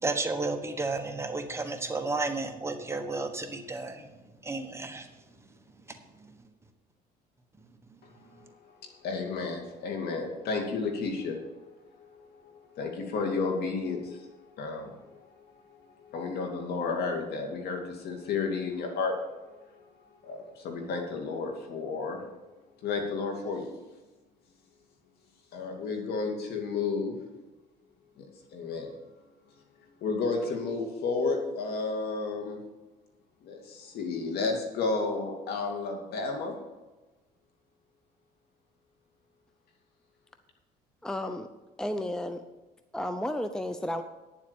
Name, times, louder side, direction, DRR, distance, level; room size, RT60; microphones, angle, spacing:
voice 1, 0.0-4.1 4.4-5.1 5.9-6.0 6.2-6.3, right 3 dB, 15° right, 5 dB, 1.2 m, -32 dB
voice 2, 8.0-11.5 12.0-22.2 22.8-23.7 25.5-27.1 28.2-28.3 28.5-28.9 30.0-32.6 33.4-36.6, left 4 dB, 70° left, 3 dB, 2.5 m, -32 dB
voice 3, 41.0-41.5 41.8-42.4 42.9-44.0, left 1 dB, 5° left, 8 dB, 0.6 m, -32 dB
10.0 x 7.4 x 7.1 m, 1.1 s
cardioid pair, 110°, 17 cm